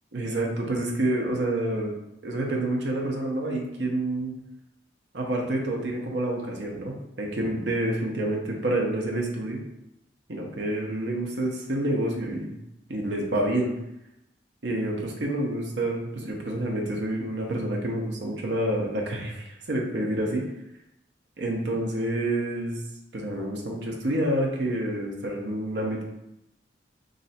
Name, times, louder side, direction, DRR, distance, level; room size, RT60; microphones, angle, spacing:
voice 1, 0.1-2.0 2.2-4.3 5.1-9.6 10.3-12.6 12.9-13.7 14.6-20.4 21.4-22.8 23.1-26.0, right 1 dB, 75° right, 0 dB, 0.8 m, -28 dB
3.2 x 2.6 x 4.1 m, 0.86 s
head